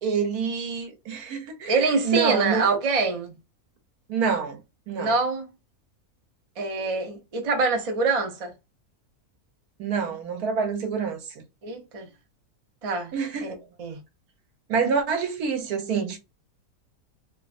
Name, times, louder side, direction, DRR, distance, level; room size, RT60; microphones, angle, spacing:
voice 1, 0.0-2.7 4.1-4.6 4.9-5.1 9.8-11.4 13.1-13.5 14.7-16.2, right 6 dB, 80° right, 1.3 m, -27 dB
voice 2, 1.7-3.4 4.9-5.5 6.6-8.5 11.6-12.1 12.8-13.1 13.4-14.0, right 4 dB, 35° right, 0.6 m, -25 dB
3.0 x 2.2 x 2.4 m
omnidirectional pair, 1.6 m